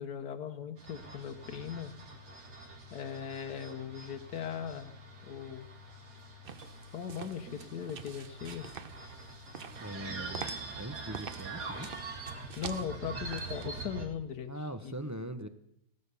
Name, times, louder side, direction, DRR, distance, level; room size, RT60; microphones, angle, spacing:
voice 1, 0.0-1.9 2.9-4.9 5.2-5.7 6.9-8.7 12.6-14.5 14.8-14.9, left 8 dB, 80° left, 5 dB, 1.5 m, -39 dB
sound 1, 0.8-14.1, right 3 dB, 85° right, 2.9 m, -44 dB
sound 2, 6.4-13.7, right 7 dB, 45° right, 0.8 m, -47 dB
voice 2, 9.8-12.0 14.5-15.5, right 1 dB, 20° right, 8 dB, 0.5 m, -41 dB
17.0 x 12.0 x 6.9 m, 0.76 s
omnidirectional pair, 1.7 m